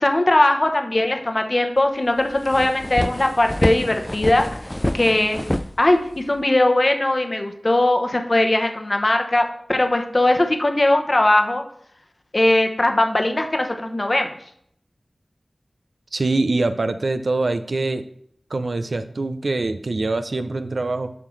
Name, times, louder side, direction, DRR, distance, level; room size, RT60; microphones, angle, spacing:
voice 1, 0.0-4.4 4.9-5.4 5.8-9.4 9.7-11.6 12.3-14.3, left 1 dB, 45° left, 5 dB, 0.9 m, -19 dB
sound 1, 1.8-1.9 2.2-6.4, left 1 dB, 15° left, 0.3 m, -27 dB
voice 2, 16.1-18.0 18.5-21.1, right 2 dB, 70° right, 9 dB, 0.5 m, -24 dB
7.5 x 5.7 x 3.2 m, 0.68 s
wide cardioid pair, 50°, 0 cm